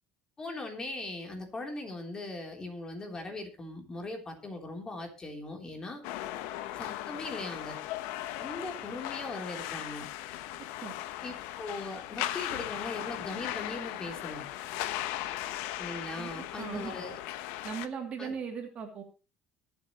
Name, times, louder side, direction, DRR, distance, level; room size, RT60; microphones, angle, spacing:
voice 1, 0.4-6.0 6.7-7.8 8.4-10.1 11.2-14.5 15.8-17.2 18.2-18.3, left 2 dB, 20° left, 3 dB, 3.5 m, -40 dB
sound 1, 6.0-17.9, left 14 dB, 80° left, 1.2 m, -38 dB
voice 2, 16.2-16.9 17.6-19.0, right 6 dB, 35° right, 3 dB, 2.8 m, -38 dB
23.0 x 8.1 x 3.1 m, 0.30 s
cardioid pair, 135°, 4 cm